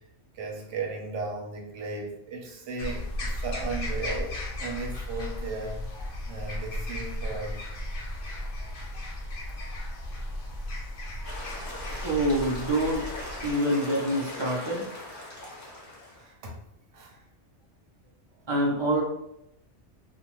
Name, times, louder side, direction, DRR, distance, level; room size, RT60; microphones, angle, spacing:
voice 1, 0.3-5.8 6.2-7.6 16.2-16.6 16.9-17.2, right 3 dB, 80° right, 0 dB, 1.0 m, -36 dB
sound 1, 2.8-13.5, left 1 dB, 55° left, 0.7 m, -35 dB
sound 2, 11.2-16.3, left 2 dB, 20° left, 0.5 m, -40 dB
voice 2, 12.0-13.0 13.4-14.9 18.5-19.0, right 1 dB, 45° right, -3 dB, 0.3 m, -26 dB
2.5 x 2.2 x 2.9 m, 0.81 s
omnidirectional pair, 1.2 m